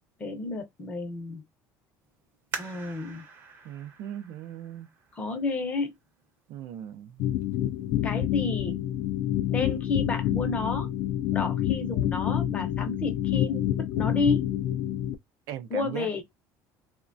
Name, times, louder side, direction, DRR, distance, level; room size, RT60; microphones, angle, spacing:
voice 1, 0.2-1.4 2.6-3.2 5.1-5.9 8.0-8.8 9.5-10.9 11.3-13.7 14.0-14.4 15.7-16.2, left 3 dB, 20° left, 0.6 m, -31 dB
sound 1, 2.5-5.9 6.5-6.6 7.2-7.6 8.0-8.1, right 5 dB, 35° right, 0.7 m, -43 dB
voice 2, 3.6-4.9 6.5-7.2 15.5-16.2, right 10 dB, 65° right, 0.4 m, -39 dB
sound 2, 7.2-15.1, left 12 dB, 65° left, 0.3 m, -28 dB
3.1 x 2.1 x 2.5 m
cardioid pair, 165°, 6 cm